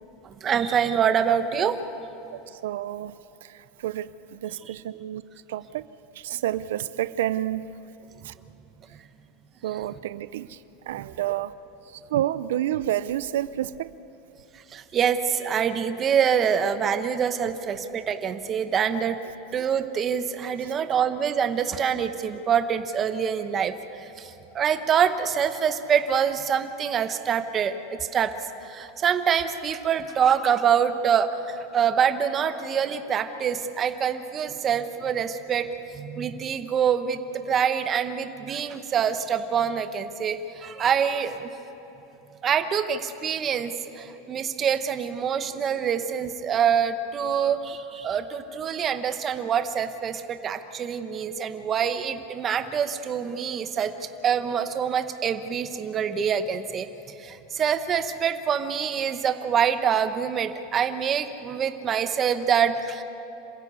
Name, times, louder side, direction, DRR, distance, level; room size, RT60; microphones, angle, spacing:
voice 1, 0.2-1.8 4.6-4.7 14.7-19.2 19.5-28.3 28.6-41.5 42.4-53.9 54.2-56.9 57.2-63.0, right 8 dB, 25° right, 9 dB, 1.0 m, -25 dB
voice 2, 2.3-3.1 3.4-5.2 5.5-5.9 6.2-7.7 8.2-8.3 9.6-10.6 10.9-11.5 11.9-13.9, right 12 dB, 85° right, 15 dB, 0.6 m, -29 dB
27.0 x 16.0 x 8.3 m, 3.0 s
supercardioid pair, 165°, 0 cm